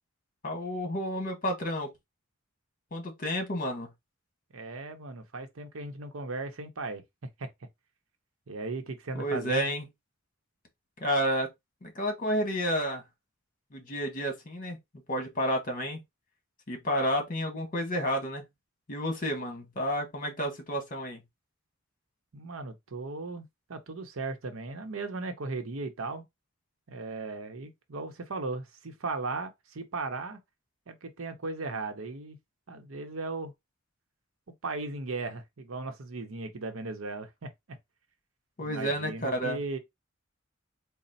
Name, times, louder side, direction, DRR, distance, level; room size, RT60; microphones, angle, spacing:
voice 1, 0.4-1.9 2.9-3.9 9.1-9.8 11.0-11.5 11.8-13.0 13.7-14.8 15.1-16.0 16.7-18.5 18.9-21.2 38.6-39.6, equal, 40° left, 1.4 m, -30 dB
voice 2, 4.5-7.0 7.4-7.5 8.5-9.7 22.3-26.2 26.9-30.4 30.9-32.4 32.7-33.5 34.6-37.8 38.6-39.8, right 3 dB, 70° right, 0.7 m, -37 dB
4.1 x 2.0 x 4.0 m
head